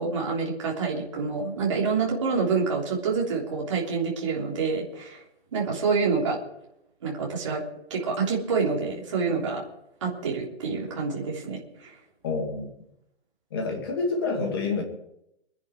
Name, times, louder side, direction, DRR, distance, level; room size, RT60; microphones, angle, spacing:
voice 1, 0.0-5.2 5.5-6.4 7.0-7.6 7.9-9.6 10.0-11.9, right 4 dB, 30° right, -3 dB, 3.3 m, -27 dB
voice 2, 12.2-12.7 13.5-14.8, left 4 dB, 20° left, 1 dB, 2.5 m, -28 dB
23.5 x 10.5 x 4.8 m, 0.81 s
hypercardioid pair, 180°, 33 cm